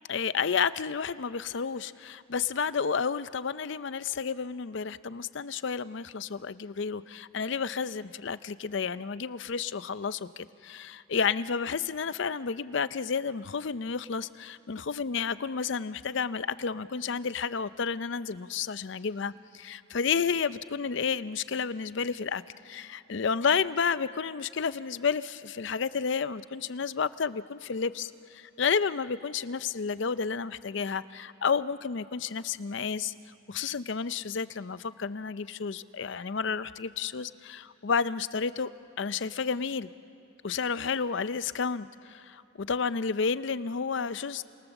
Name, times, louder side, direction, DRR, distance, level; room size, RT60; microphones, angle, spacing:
voice 1, 0.1-33.1 33.5-38.7 39.0-39.9 40.4-44.4, left 5 dB, 55° left, 15 dB, 0.5 m, -31 dB
30.0 x 26.0 x 7.2 m, 3.0 s
head